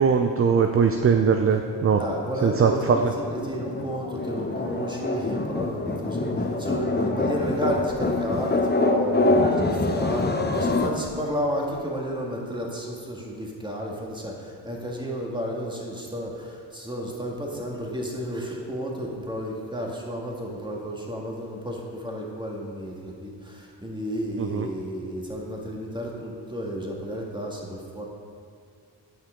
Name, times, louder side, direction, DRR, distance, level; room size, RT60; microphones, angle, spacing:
voice 1, 0.0-2.0 2.4-3.1 24.4-24.7, right 6 dB, 30° right, 5 dB, 0.5 m, -21 dB
voice 2, 2.0-28.0, equal, 10° right, -2 dB, 1.8 m, -32 dB
sound 1, 2.9-10.9, left 2 dB, 20° left, 0.8 m, -25 dB
9.0 x 5.7 x 3.8 m, 2.2 s
supercardioid pair, 40°, 49 cm